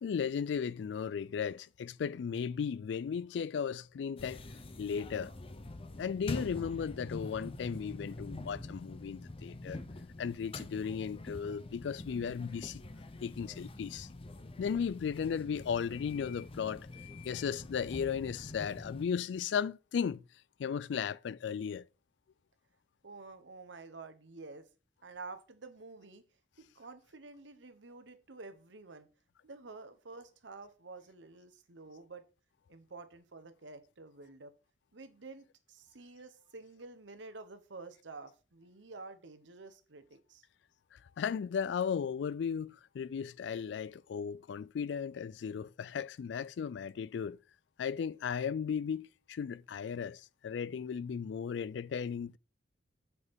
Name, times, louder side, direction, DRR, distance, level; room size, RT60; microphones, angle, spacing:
voice 1, 0.0-4.4 4.8-5.3 6.0-9.8 10.2-12.8 13.2-14.1 14.6-16.8 17.2-20.2 20.6-21.8 41.2-47.4 47.8-52.4, left 7 dB, 70° left, 0.3 m, -36 dB
sound 1, 4.2-19.0, left 2 dB, 30° left, 0.6 m, -45 dB
voice 2, 23.0-24.7 25.0-26.2 26.6-29.1 29.4-32.2 32.7-34.5 34.9-40.4, right 3 dB, 85° right, 1.0 m, -50 dB
8.0 x 5.9 x 3.6 m
head